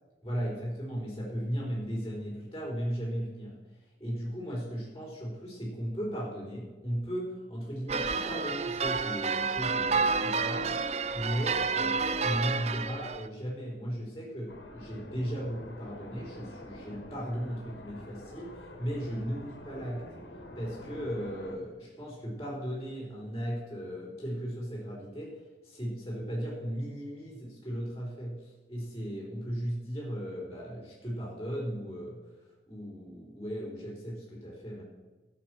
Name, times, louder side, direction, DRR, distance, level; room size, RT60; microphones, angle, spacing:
voice 1, 0.2-3.5 4.0-20.1 20.6-25.4 25.6-34.8, equal, 15° left, -4 dB, 4.1 m, -36 dB
sound 1, 7.9-13.3, right 4 dB, 35° right, 0.5 m, -30 dB
sound 2, 14.5-21.6, left 1 dB, 80° left, 2.3 m, -47 dB
15.0 x 8.0 x 6.2 m, 1.2 s
head